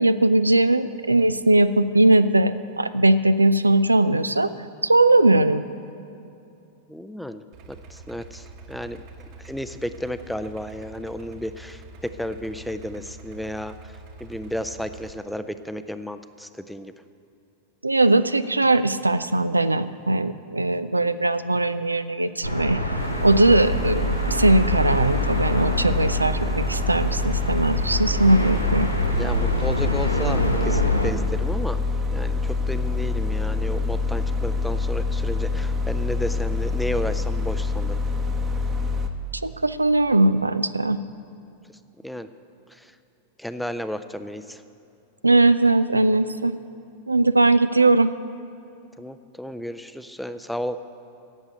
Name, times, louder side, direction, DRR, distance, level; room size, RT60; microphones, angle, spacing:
voice 1, 0.0-4.5 4.8-5.6 17.8-22.8 23.2-28.9 39.4-41.0 45.2-46.6 47.1-48.1, right 2 dB, 80° right, 12 dB, 0.4 m, -19 dB
voice 2, 6.9-7.4 7.7-9.0 9.4-13.9 14.2-16.9 29.1-31.8 32.1-38.0 42.0-42.3 43.4-44.6 49.0-50.8, equal, ahead, 11 dB, 0.5 m, -32 dB
Idling, 7.5-15.1, right 2 dB, 45° right, 1.2 m, -45 dB
sound 1, 22.4-31.1, equal, 90° left, 0.9 m, -26 dB
sound 2, 23.0-39.1, left 3 dB, 25° right, 0.9 m, -26 dB
11.5 x 8.2 x 9.0 m, 2.6 s
figure-of-eight pair, 90°, 0 cm